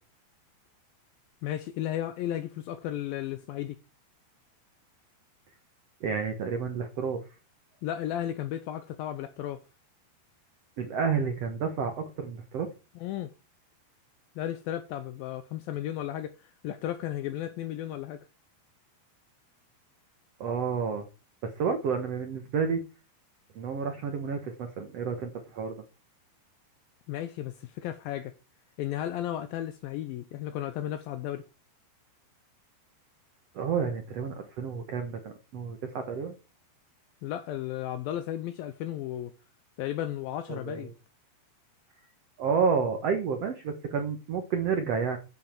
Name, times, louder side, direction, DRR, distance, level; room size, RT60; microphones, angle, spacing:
voice 1, 1.4-3.8 7.8-9.6 13.0-13.3 14.4-18.3 27.1-28.3 28.8-31.4 37.2-39.3 39.8-40.9, left 12 dB, 80° left, 2.1 m, -34 dB
voice 2, 6.0-7.2 10.8-12.7 20.4-21.1 21.4-22.8 23.5-25.7 33.5-36.3 40.5-40.9 42.4-45.2, right 6 dB, 75° right, 1.4 m, -30 dB
11.0 x 7.5 x 4.5 m
omnidirectional pair, 4.8 m